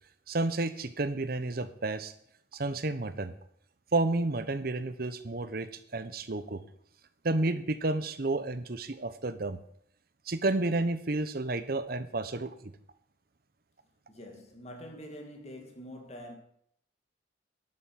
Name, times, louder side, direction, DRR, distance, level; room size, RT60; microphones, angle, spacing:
voice 1, 0.3-2.1 2.5-3.3 3.9-6.6 7.2-9.6 10.3-12.5, right 2 dB, 55° right, 0.9 m, -31 dB
voice 2, 14.1-16.4, equal, 35° left, 1.9 m, -45 dB
12.0 x 8.1 x 5.9 m
head